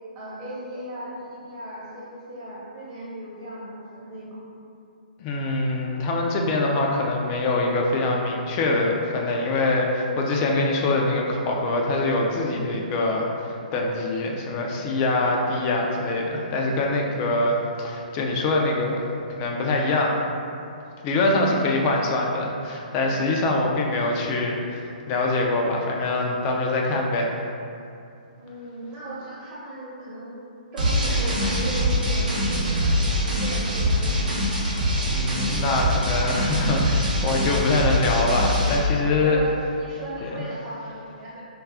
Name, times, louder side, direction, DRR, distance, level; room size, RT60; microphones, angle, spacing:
voice 1, 0.1-4.4 21.2-21.8 28.4-30.4 30.7-34.4 38.9-41.4, right 1 dB, 30° right, -7 dB, 0.9 m, -37 dB
voice 2, 5.2-19.0 19.3-20.2 21.0-27.3 35.0-39.4 40.2-40.3, left 2 dB, 30° left, -1 dB, 0.3 m, -24 dB
sound 1, 30.8-38.8, equal, 70° right, 0.8 m, -23 dB
2.3 x 2.3 x 3.3 m, 2.6 s
figure-of-eight pair, 125°, 5 cm